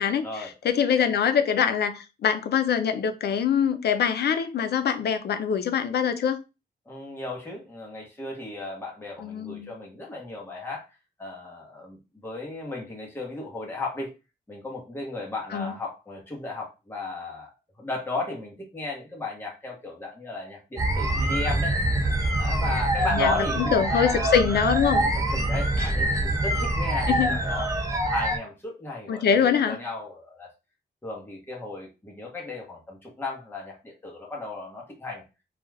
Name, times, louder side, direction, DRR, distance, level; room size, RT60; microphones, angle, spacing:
voice 1, 0.0-6.4 9.2-9.7 15.5-15.7 23.1-25.1 25.8-25.9 27.1-27.3 29.1-29.8, left 7 dB, 70° left, 0.4 m, -24 dB
voice 2, 6.9-10.9 11.2-14.1 14.5-17.5 17.8-21.8 22.4-24.4 24.9-27.7 28.0-30.5 31.0-35.2, left 3 dB, 15° left, 0.9 m, -35 dB
sound 1, 20.8-28.4, right 1 dB, 20° right, 0.4 m, -25 dB
2.4 x 2.2 x 3.1 m
wide cardioid pair, 165°, 17 cm